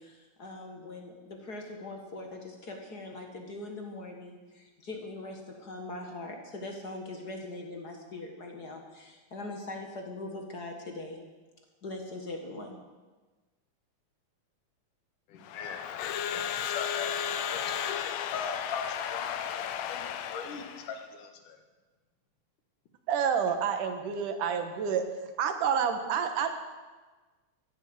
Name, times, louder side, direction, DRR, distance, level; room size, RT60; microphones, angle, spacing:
voice 1, 0.0-11.2 11.8-12.8, left 2 dB, 40° left, 3 dB, 1.7 m, -41 dB
voice 2, 15.3-17.8 18.3-21.6, left 5 dB, 90° left, 6 dB, 3.1 m, -41 dB
Crowd / Alarm, 15.4-21.0, left 9 dB, 75° left, 2.0 m, -34 dB
voice 3, 23.1-25.0 25.4-26.5, right 7 dB, 85° right, 7 dB, 2.9 m, -28 dB
14.5 x 11.0 x 7.9 m, 1.3 s
omnidirectional pair, 3.6 m